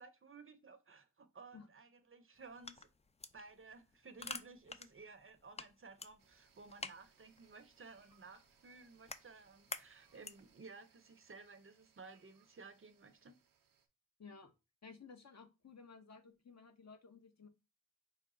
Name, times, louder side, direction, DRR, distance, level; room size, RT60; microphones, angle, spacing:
voice 1, 0.0-2.9 3.3-13.4, right 4 dB, 40° right, 0.6 m, -56 dB
sound 1, 2.3-10.6, left 4 dB, 20° left, 0.4 m, -51 dB
sound 2, 6.2-13.9, right 7 dB, 85° right, 0.6 m, -72 dB
voice 2, 14.2-14.5 14.8-17.5, left 5 dB, 50° left, 0.8 m, -56 dB
4.8 x 2.3 x 3.7 m
cardioid pair, 55°, 33 cm